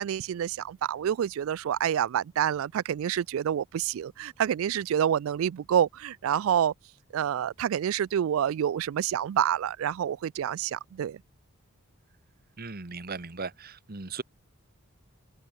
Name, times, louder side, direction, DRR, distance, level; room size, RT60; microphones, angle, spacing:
voice 1, 0.0-6.7 7.1-11.2, right 9 dB, 70° right, 0.3 m, -28 dB
voice 2, 12.6-14.2, right 4 dB, 45° right, 1.4 m, -37 dB
head